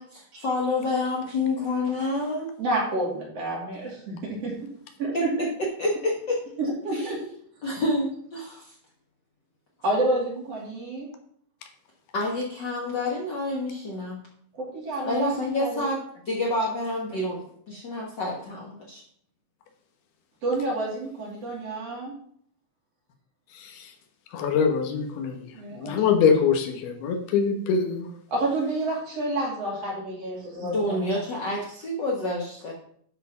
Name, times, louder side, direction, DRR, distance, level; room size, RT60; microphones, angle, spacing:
voice 1, 0.0-2.6 5.1-5.3 5.8-6.4 6.9-7.1 7.6-8.7 12.1-14.2 15.0-16.0 16.2-19.0 30.6-32.7, left 2 dB, 65° left, -3 dB, 1.0 m, -28 dB
voice 2, 2.6-4.5 5.0-5.5 6.6-7.2 9.8-11.1 14.5-15.9 20.4-22.1 25.5-25.9 28.3-31.1, right 2 dB, 45° right, -3 dB, 3.3 m, -29 dB
voice 3, 24.3-25.4 25.8-28.1, left 6 dB, 90° left, 5 dB, 3.2 m, -23 dB
12.0 x 4.5 x 5.8 m, 0.63 s
omnidirectional pair, 4.4 m